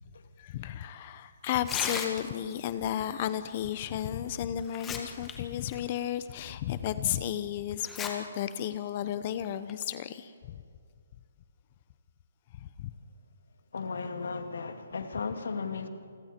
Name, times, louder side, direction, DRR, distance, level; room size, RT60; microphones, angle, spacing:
voice 1, 0.4-10.6 12.6-12.9, left 11 dB, 35° left, 0.8 m, -33 dB
Tearing, 1.5-2.5 4.0-4.1 4.6-5.3 5.7-5.8 6.5-6.6 7.8-8.1 8.5-8.6 9.4-9.7, left 6 dB, 10° left, 1.6 m, -36 dB
voice 2, 13.7-15.9, left 4 dB, 75° left, 2.3 m, -35 dB
27.5 x 21.0 x 4.5 m
hypercardioid pair, 160°, 0 cm